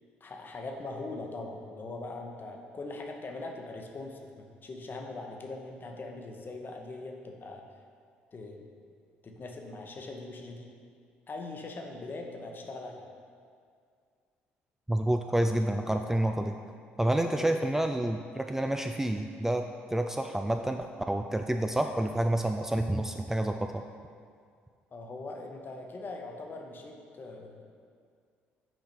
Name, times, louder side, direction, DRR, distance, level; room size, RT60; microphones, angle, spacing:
voice 1, 0.2-7.6 8.3-8.7 9.2-10.7 11.3-13.0 17.2-17.6 24.9-27.6, left 2 dB, 40° left, 2 dB, 0.9 m, -41 dB
voice 2, 14.9-16.5 17.0-19.6 19.9-23.8, right 1 dB, 10° right, 5 dB, 0.3 m, -29 dB
6.0 x 4.9 x 4.4 m, 2.2 s
hypercardioid pair, 55°, 5 cm